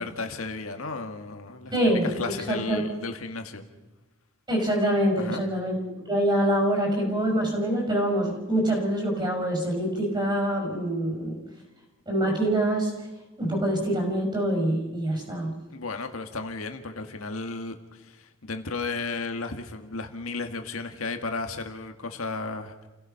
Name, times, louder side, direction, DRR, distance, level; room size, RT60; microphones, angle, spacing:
voice 1, 0.0-1.8 2.0-3.6 5.2-5.5 15.7-22.7, left 3 dB, 90° left, 6 dB, 1.7 m, -34 dB
voice 2, 1.7-2.8 4.5-5.8 6.0-11.4 12.1-12.9 13.4-15.6, right 1 dB, 20° right, 2 dB, 6.1 m, -25 dB
29.5 x 16.5 x 5.7 m, 1.1 s
head